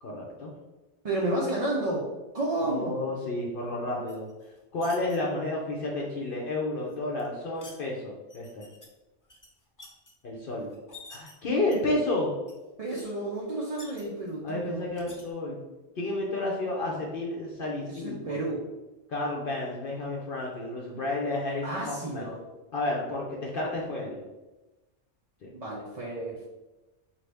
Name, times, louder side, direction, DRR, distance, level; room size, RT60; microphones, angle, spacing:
voice 1, 0.0-0.5 2.6-4.3 4.7-8.7 10.2-10.7 11.1-12.3 14.4-15.6 16.0-18.4 19.1-22.3 22.7-24.2 25.4-25.5, left 2 dB, 55° left, -2 dB, 0.8 m, -31 dB
voice 2, 1.0-2.1 2.3-3.0 12.8-14.8 17.9-18.6 21.6-22.4 25.5-26.5, right 2 dB, 45° right, -4 dB, 0.5 m, -31 dB
sound 1, 4.1-5.2 6.9-7.8 8.3-8.9 9.2-10.1 10.7-11.3 11.7-12.1 12.5-12.6 12.8-13.0 13.4-14.4 14.9-15.2, left 2 dB, 25° left, 0.4 m, -49 dB
4.0 x 2.7 x 3.3 m, 1.1 s
omnidirectional pair, 1.2 m